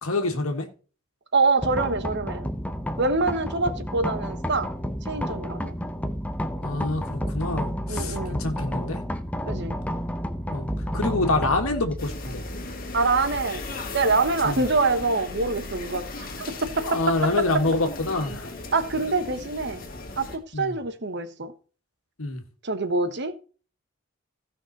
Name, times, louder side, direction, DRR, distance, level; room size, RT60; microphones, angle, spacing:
voice 1, 0.0-0.7 6.6-9.0 10.5-10.7 10.9-12.4 14.4-14.6 16.8-18.5 20.5-20.7 22.2-22.4, left 2 dB, 90° left, 1.7 m, -26 dB
voice 2, 1.3-2.5 3.0-4.7 5.1-5.7 7.9-8.4 9.5-9.8 12.9-13.6 13.9-17.6 18.7-19.8 20.2-21.5 22.6-23.3, right 3 dB, 55° right, 1.1 m, -25 dB
sound 1, 1.6-15.5, equal, 5° left, 0.8 m, -32 dB
sound 2, 12.0-20.4, left 3 dB, 40° left, 2.0 m, -37 dB
16.0 x 5.8 x 4.1 m
head